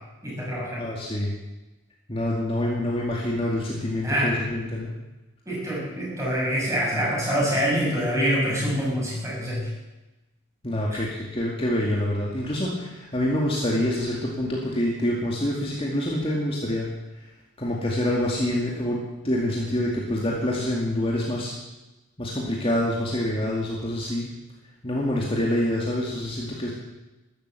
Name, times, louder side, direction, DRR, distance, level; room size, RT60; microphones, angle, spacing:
voice 1, 0.2-0.9 4.0-4.3 5.5-9.7 10.9-11.0, equal, 15° right, -5 dB, 7.1 m, -25 dB
voice 2, 0.8-1.3 2.1-4.9 10.6-16.9 17.2-17.3 17.6-21.5 22.2-24.3 24.8-26.7, left 1 dB, 25° left, -3 dB, 2.2 m, -26 dB
13.0 x 12.5 x 8.0 m, 1.1 s
head